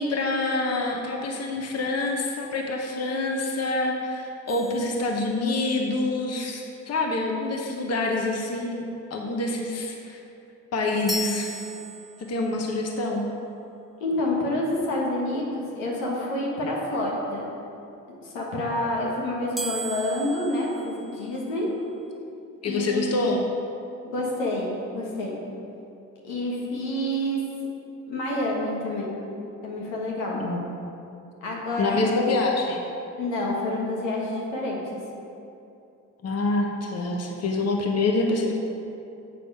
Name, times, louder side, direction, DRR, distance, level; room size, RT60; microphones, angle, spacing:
voice 1, 0.0-10.2 10.7-11.5 12.3-13.3 22.6-23.4 30.3-30.7 31.8-32.8 36.2-38.5, left 2 dB, 40° left, 1 dB, 1.1 m, -26 dB
sound 1, 4.5-5.8 11.1-12.6 19.6-21.7, right 2 dB, ahead, 0.4 m, -36 dB
voice 2, 14.0-17.5 18.2-21.7 22.7-23.3 24.0-25.4 26.2-27.4 28.1-29.1 29.6-30.4 31.4-32.2 33.2-35.0, left 1 dB, 85° left, -3 dB, 1.6 m, -28 dB
7.6 x 5.9 x 4.8 m, 2.8 s
hypercardioid pair, 60°, 38 cm